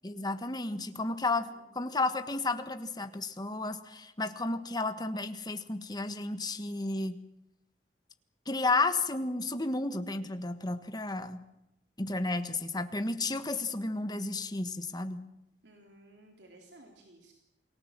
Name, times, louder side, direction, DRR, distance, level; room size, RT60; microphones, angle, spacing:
voice 1, 0.0-1.5 1.7-7.1 8.5-11.4 12.0-15.2, left 3 dB, 25° left, 9 dB, 1.5 m, -32 dB
voice 2, 1.5-2.0 15.6-17.3, right 1 dB, 80° right, 1 dB, 3.6 m, -57 dB
28.0 x 19.0 x 7.6 m, 0.87 s
head